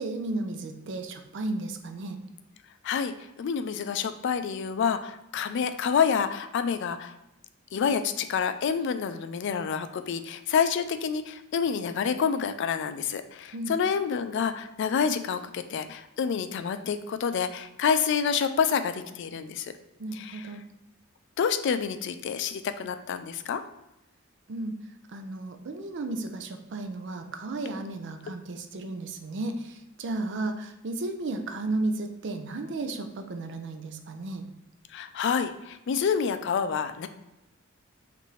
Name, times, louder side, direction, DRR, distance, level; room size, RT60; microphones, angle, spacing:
voice 1, 0.0-2.2 13.5-13.7 20.0-20.6 24.5-24.8 25.1-34.5, right 2 dB, 60° right, 6 dB, 0.5 m, -34 dB
voice 2, 2.8-7.1 7.7-19.7 20.2-20.4 21.4-23.6 34.9-37.1, left 6 dB, 60° left, 10 dB, 0.3 m, -28 dB
5.5 x 2.6 x 3.1 m, 0.91 s
head